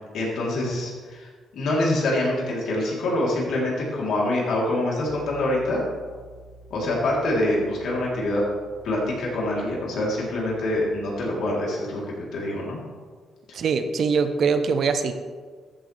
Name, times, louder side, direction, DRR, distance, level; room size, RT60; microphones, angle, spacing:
voice 1, 0.1-5.8 6.7-8.4 8.8-12.8, left 1 dB, 70° left, -4 dB, 3.5 m, -25 dB
Piano, 5.1-11.4, right 2 dB, 35° left, 1.2 m, -50 dB
voice 2, 13.5-15.1, right 5 dB, 60° right, 8 dB, 0.9 m, -22 dB
14.5 x 7.6 x 3.4 m, 1.6 s
cardioid pair, 90°, 0 cm